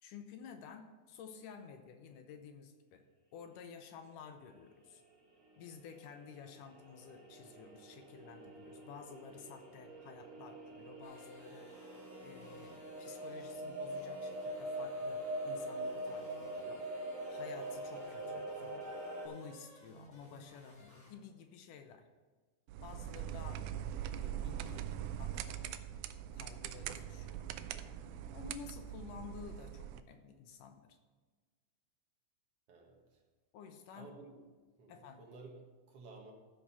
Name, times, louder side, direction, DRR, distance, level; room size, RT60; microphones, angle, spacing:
voice 1, 0.0-3.0 3.3-5.0 5.6-11.7 12.2-18.9 19.2-22.1 22.8-23.6 24.1-24.9 25.2-25.8 26.3-27.5 28.3-31.0 33.5-34.1 34.9-35.2, left 6 dB, 75° left, 7 dB, 2.2 m, -52 dB
sound 1, 4.8-4.9 5.1-5.2 5.5-19.3, right 1 dB, 25° right, 4.0 m, -44 dB
sound 2, 11.0-21.1, left 1 dB, 30° left, 1.8 m, -59 dB
sound 3, 22.7-30.0, right 10 dB, 85° right, 1.7 m, -42 dB
voice 2, 32.7-33.2 33.9-34.4 34.8-36.3, right 3 dB, 50° right, 1 dB, 2.1 m, -54 dB
14.5 x 5.0 x 5.5 m, 1.4 s
omnidirectional pair, 3.9 m